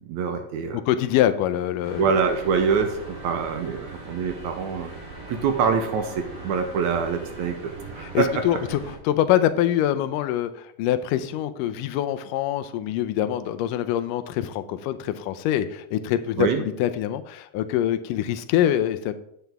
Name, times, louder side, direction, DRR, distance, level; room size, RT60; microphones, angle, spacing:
voice 1, 0.0-0.8 2.0-4.9 5.3-8.4 16.4-16.6, right 6 dB, 75° right, 6 dB, 1.9 m, -25 dB
voice 2, 0.7-2.0 8.0-19.1, left 11 dB, 85° left, 10 dB, 2.2 m, -24 dB
sound 1, 1.8-8.9, right 2 dB, 15° right, 3.4 m, -40 dB
9.2 x 8.0 x 3.5 m, 0.74 s
omnidirectional pair, 3.7 m